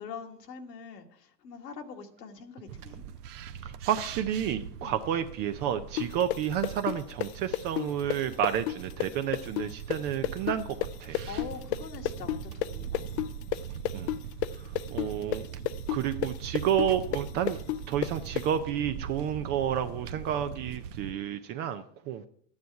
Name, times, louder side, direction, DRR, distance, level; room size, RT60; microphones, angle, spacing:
voice 1, 0.0-3.0 4.8-4.9 11.2-13.2 14.6-14.8, left 6 dB, 80° left, 3 dB, 1.8 m, -44 dB
sound 1, 2.7-21.1, right 8 dB, 65° right, 0.9 m, -41 dB
voice 2, 3.6-10.6 11.0-11.2 13.9-14.2 14.9-15.5 15.9-17.6 17.9-22.2, right 9 dB, 25° right, 10 dB, 0.3 m, -30 dB
sound 2, 6.0-13.6 13.8-18.4, left 15 dB, 40° left, 0.5 m, -31 dB
12.5 x 9.6 x 4.7 m, 0.63 s
hypercardioid pair, 105°, 49 cm